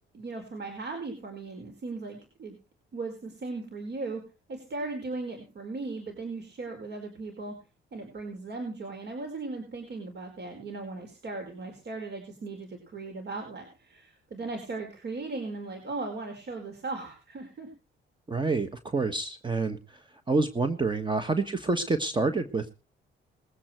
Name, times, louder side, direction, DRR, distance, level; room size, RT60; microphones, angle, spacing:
voice 1, 0.1-2.6 2.9-4.2 4.5-7.5 7.9-17.7, right 3 dB, 55° right, 4 dB, 4.8 m, -37 dB
voice 2, 18.3-22.7, right 3 dB, 25° right, 9 dB, 1.4 m, -28 dB
21.0 x 8.6 x 4.5 m, 0.33 s
cardioid pair, 90°, 20 cm